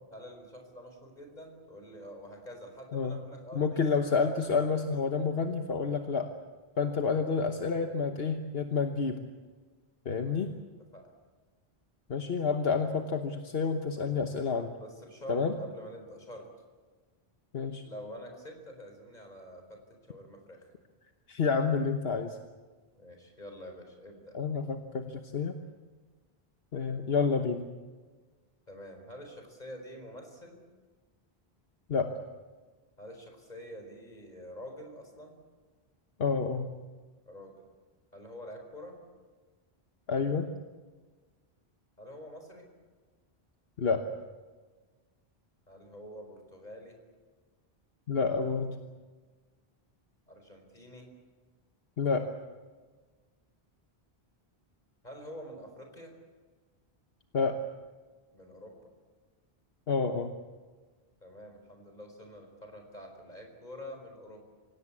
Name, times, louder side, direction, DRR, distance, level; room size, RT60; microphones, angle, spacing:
voice 1, 0.1-3.8 10.2-10.5 10.9-11.1 13.9-14.0 14.7-16.5 17.8-19.8 20.1-20.7 22.9-24.4 28.7-30.6 33.0-35.4 37.2-37.5 38.1-39.0 42.0-42.7 45.7-47.0 50.3-51.1 55.0-56.1 58.3-58.9 61.2-64.4, equal, 45° left, 4 dB, 4.8 m, -47 dB
voice 2, 3.5-6.3 6.8-9.2 10.0-10.5 12.1-14.7 15.3-15.6 17.5-17.8 21.3-22.4 24.3-25.6 26.7-27.7 31.9-32.1 36.2-36.7 40.1-40.5 43.8-44.0 48.1-48.7 52.0-52.3 57.3-57.6 59.9-60.4, left 5 dB, 75° left, 6 dB, 1.4 m, -29 dB
26.0 x 17.5 x 8.5 m, 1.4 s
omnidirectional pair, 1.0 m